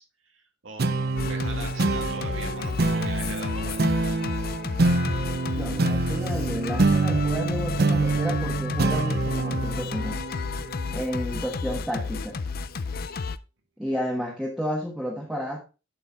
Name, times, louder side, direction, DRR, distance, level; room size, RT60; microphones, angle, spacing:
voice 1, 0.0-4.0, right 4 dB, 80° right, 3 dB, 1.9 m, -42 dB
sound 1, 0.8-11.6, right 3 dB, 50° right, 0.7 m, -26 dB
Singing, 1.2-13.4, left 4 dB, 50° left, 0.5 m, -32 dB
voice 2, 5.5-10.2 10.9-12.4 13.8-15.6, equal, ahead, -2 dB, 1.3 m, -31 dB
11.0 x 4.5 x 4.1 m, 0.30 s
head